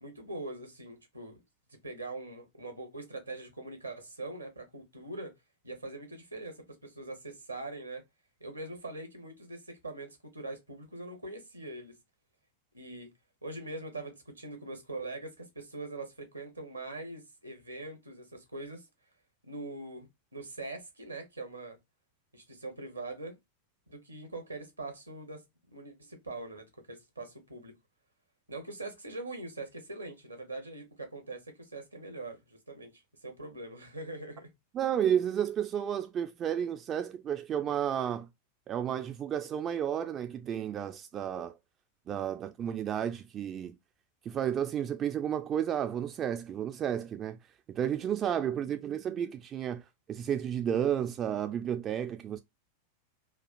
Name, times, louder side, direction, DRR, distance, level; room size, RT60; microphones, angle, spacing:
voice 1, 0.0-1.4 1.7-5.3 5.6-8.0 8.4-12.0 12.7-13.1 13.4-18.9 19.4-21.8 22.3-23.4 23.9-27.7 28.5-32.9 33.2-34.5, right 2 dB, 80° right, 0.9 m, -42 dB
voice 2, 34.7-38.3 38.7-41.6 42.1-43.8 44.3-47.4 47.7-49.8 50.1-52.4, right 9 dB, 30° right, 0.3 m, -32 dB
3.2 x 2.3 x 2.4 m
figure-of-eight pair, 90°, 0 cm